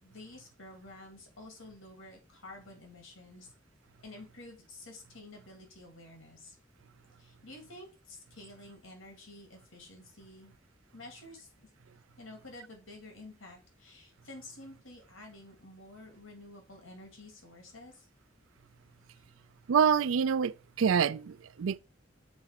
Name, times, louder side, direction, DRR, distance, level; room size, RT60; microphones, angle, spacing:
voice 1, 0.0-3.5 4.0-6.6 7.2-10.5 10.9-11.7 12.2-18.1, left 2 dB, 90° left, 2.4 m, -50 dB
voice 2, 19.7-21.8, right 7 dB, 80° right, 0.4 m, -26 dB
7.1 x 4.0 x 6.5 m
head